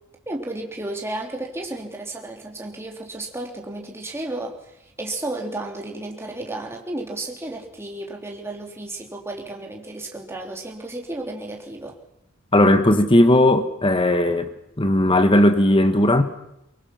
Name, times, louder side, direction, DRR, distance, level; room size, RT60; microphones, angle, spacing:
voice 1, 0.3-12.0, right 2 dB, 10° right, 3.2 m, -33 dB
voice 2, 12.5-14.5 14.8-16.2, left 1 dB, 25° left, 1.5 m, -17 dB
23.5 x 23.0 x 5.9 m
head